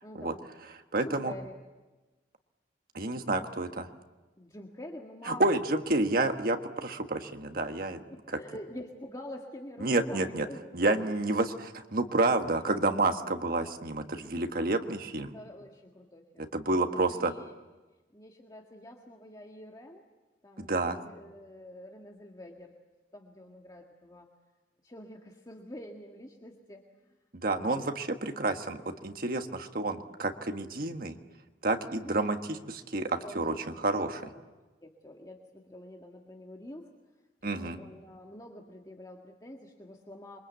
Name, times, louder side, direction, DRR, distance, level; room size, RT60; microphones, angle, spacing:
voice 1, 0.0-0.5 0.9-1.6 4.4-5.4 5.7-5.9 8.1-10.6 15.3-17.5 18.1-20.0 20.4-22.7 23.1-24.3 24.8-27.1 27.5-27.9 31.9-32.2 33.2-33.6 33.9-34.4 34.8-36.9 37.4-40.4, left 1 dB, 20° left, 1 dB, 1.8 m, -47 dB
voice 2, 0.9-1.3 2.9-3.9 5.3-8.0 9.8-10.4 10.7-15.3 16.4-17.3 20.6-21.0 27.3-31.2 31.6-32.4 32.7-34.2 37.4-37.8, right 2 dB, 55° right, 6 dB, 1.5 m, -29 dB
27.5 x 23.5 x 8.3 m, 1.2 s
head